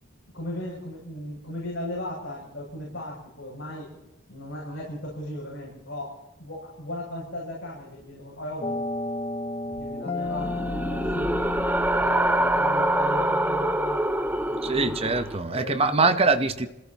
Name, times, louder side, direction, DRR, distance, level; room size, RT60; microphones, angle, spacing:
voice 1, 0.0-3.9 4.3-8.7 9.7-11.5 12.0-15.0 15.5-16.3, left 1 dB, 70° left, 7.4 m, -37 dB
sound 1, 8.6-13.8, left 2 dB, 30° left, 0.8 m, -33 dB
sound 2, 10.2-15.4, right 1 dB, 10° right, 0.5 m, -25 dB
voice 2, 14.6-16.7, right 3 dB, 30° right, 1.0 m, -23 dB
26.0 x 17.5 x 3.0 m
head